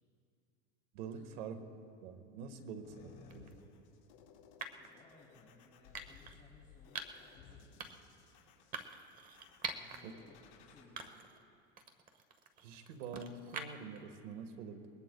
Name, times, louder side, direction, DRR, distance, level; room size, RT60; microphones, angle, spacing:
voice 1, 0.9-1.7 2.0-2.9 3.3-3.4 10.0-10.1 12.6-14.9, right 5 dB, 80° right, 6 dB, 1.6 m, -46 dB
voice 2, 2.5-3.4 4.7-8.2 9.6-11.3, left 2 dB, 20° left, -5 dB, 2.6 m, -63 dB
sound 1, 2.8-10.8, left 7 dB, 60° left, 4.1 m, -60 dB
sound 2, 3.3-3.5 4.6-4.9 5.9-6.4 7.0-7.3 7.8-8.1 8.7-10.0 10.4-10.5 11.0-11.4 11.8-14.0, right 5 dB, 25° right, 0.9 m, -45 dB
29.5 x 20.5 x 2.3 m, 2.6 s
supercardioid pair, 150°, 35 cm